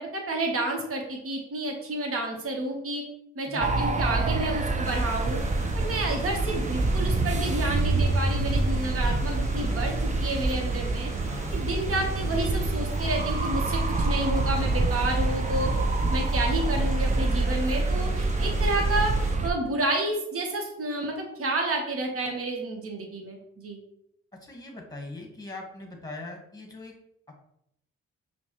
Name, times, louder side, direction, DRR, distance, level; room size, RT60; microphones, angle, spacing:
voice 1, 0.0-3.0 3.4-5.4 5.7-11.1 11.5-15.7 16.1-19.1 19.4-23.8, right 2 dB, 50° right, 1 dB, 1.1 m, -30 dB
sound 1, 3.6-19.5, right 2 dB, 25° right, 0.5 m, -26 dB
sound 2, 4.8-19.4, equal, 10° right, 1.3 m, -46 dB
voice 2, 24.4-26.9, left 2 dB, 10° left, 1 dB, 1.3 m, -40 dB
5.2 x 2.2 x 3.0 m, 0.76 s
supercardioid pair, 50°, 30 cm